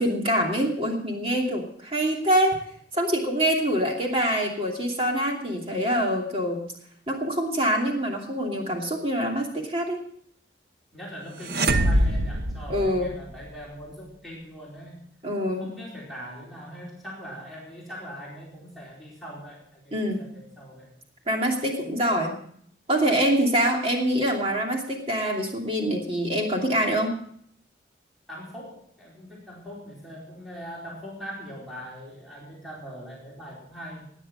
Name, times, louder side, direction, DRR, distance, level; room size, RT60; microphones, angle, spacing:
voice 1, 0.0-2.6 2.9-6.6 7.1-10.0 12.7-13.1 15.2-15.7 19.9-20.2 21.3-22.3 22.9-27.1, equal, 30° right, 1 dB, 2.7 m, -25 dB
voice 2, 10.9-15.0 15.6-20.9 28.3-34.1, equal, ahead, -6 dB, 4.5 m, -41 dB
sound 1, 11.4-13.4, right 1 dB, 60° right, 1.0 m, -24 dB
18.0 x 10.0 x 5.6 m, 0.64 s
head